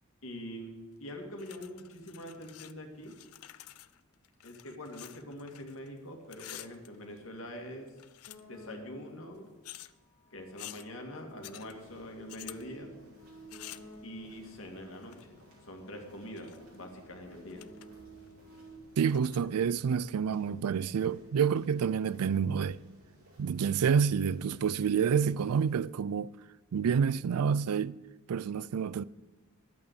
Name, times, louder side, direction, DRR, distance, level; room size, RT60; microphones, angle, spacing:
voice 1, 0.2-3.1 4.4-7.9 8.5-9.5 10.3-12.9 14.0-15.4 15.6-17.6, left 1 dB, 65° left, 2.2 m, -44 dB
sound 1, 1.4-2.7 3.0-5.9 6.2-7.4 7.9-8.7 9.6-9.9 10.6-10.9 11.4-11.7 12.3-12.6 13.5-13.9 15.0-15.4 16.1-16.8 17.1-17.2 17.5-17.9 18.2-18.3 19.0-19.4, left 15 dB, 80° left, 0.5 m, -49 dB
sound 2, 8.3-9.3 10.1-14.6 15.4-18.8, right 1 dB, 45° left, 2.6 m, -53 dB
sound 3, 11.6-25.8, equal, 70° right, 5.0 m, -59 dB
voice 2, 19.0-22.8 23.4-26.3 26.7-28.0 28.3-29.0, right 7 dB, 90° right, 0.4 m, -28 dB
11.0 x 8.4 x 8.1 m
head